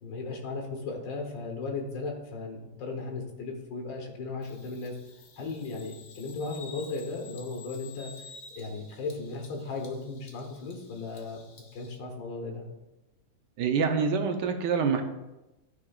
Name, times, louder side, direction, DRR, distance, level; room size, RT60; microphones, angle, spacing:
voice 1, 0.0-5.0 5.4-8.1 8.6-11.4 11.7-12.6, left 3 dB, 80° left, 2 dB, 1.9 m, -36 dB
Bird vocalization bird call bird song, 4.4-12.0, left 4 dB, 55° left, 1.2 m, -51 dB
voice 2, 13.6-15.0, right 5 dB, 75° right, 5 dB, 1.4 m, -26 dB
12.5 x 4.9 x 2.4 m, 1.0 s
omnidirectional pair, 2.0 m